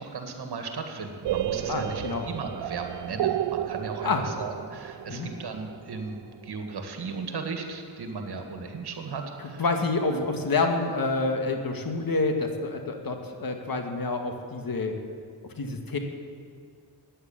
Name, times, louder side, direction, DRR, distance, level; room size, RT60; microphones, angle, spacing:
voice 1, 0.0-9.6 10.1-10.2, right 4 dB, 75° right, 4 dB, 2.1 m, -36 dB
sound 1, 1.2-7.0, right 12 dB, 90° right, 0.5 m, -32 dB
voice 2, 1.7-2.3 4.0-4.2 5.1-5.3 9.6-14.9 15.6-16.0, left 3 dB, 60° left, 4 dB, 2.0 m, -28 dB
14.5 x 10.0 x 8.9 m, 2.2 s
cardioid pair, 75°, 40 cm